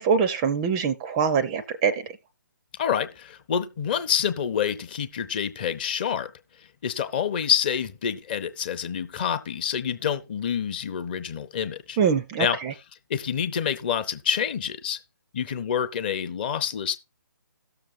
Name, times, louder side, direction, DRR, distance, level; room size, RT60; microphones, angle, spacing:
voice 1, 0.0-2.1 12.0-12.7, right 6 dB, 15° right, 0.4 m, -24 dB
voice 2, 2.8-6.3 6.8-12.0 12.4-12.6 13.1-15.0 15.3-17.0, left 8 dB, 30° left, 0.6 m, -27 dB
17.0 x 6.7 x 2.5 m
figure-of-eight pair, 140°, 11 cm